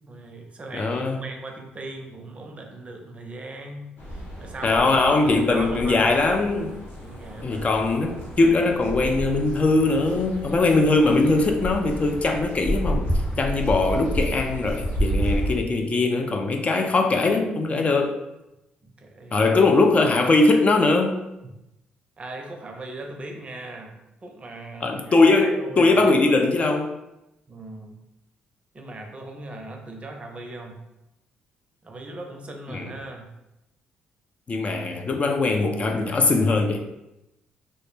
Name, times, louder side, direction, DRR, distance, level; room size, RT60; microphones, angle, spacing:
voice 1, 0.0-6.1 7.0-7.7 15.7-15.9 18.8-19.5 22.2-23.9 24.2-25.9 27.5-28.0 28.7-30.8 31.8-33.3, right 2 dB, 35° right, 2 dB, 0.5 m, -39 dB
voice 2, 0.7-1.2 4.6-6.8 7.4-13.1 13.4-18.2 19.3-21.2 24.8-26.9 32.7-32.9 34.5-36.8, left 3 dB, 40° left, 4 dB, 0.3 m, -21 dB
sound 1, 4.0-15.5, equal, 60° left, 0.8 m, -30 dB
2.1 x 2.0 x 3.1 m, 0.92 s
supercardioid pair, 60°, 4 cm